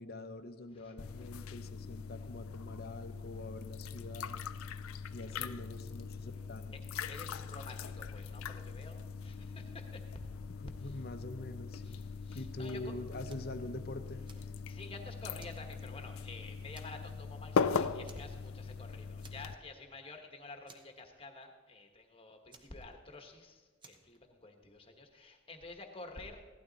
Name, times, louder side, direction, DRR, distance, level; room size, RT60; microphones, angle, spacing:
voice 1, 0.0-4.4 5.1-6.7 10.6-12.0 12.3-14.3, left 1 dB, 50° left, 8 dB, 0.8 m, -45 dB
voice 2, 0.7-1.2 5.2-5.5 6.7-6.8 7.1-10.3 10.8-11.0 11.8-12.9 14.7-26.4, left 2 dB, 25° left, 5 dB, 1.3 m, -50 dB
sound 1, 1.0-19.5, left 5 dB, 80° left, 0.5 m, -40 dB
Fire, 13.3-13.6 14.0-14.9 15.4-16.3 16.7-17.2 17.4-17.6 18.0-18.8 19.2-19.8 20.1-20.2 20.7-21.5 22.5-23.3 23.8-24.2, right 3 dB, 25° right, 1.0 m, -59 dB
16.0 x 12.0 x 4.1 m, 1.4 s
head